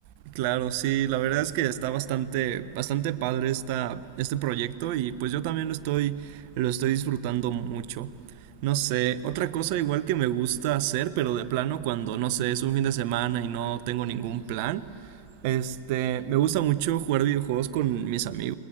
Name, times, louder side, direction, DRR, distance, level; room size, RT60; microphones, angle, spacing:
voice 1, 0.3-8.1 8.6-15.1 15.4-18.5, right 12 dB, 45° right, 0.9 m, -27 dB
28.0 x 21.5 x 8.0 m
figure-of-eight pair, 90°, 0 cm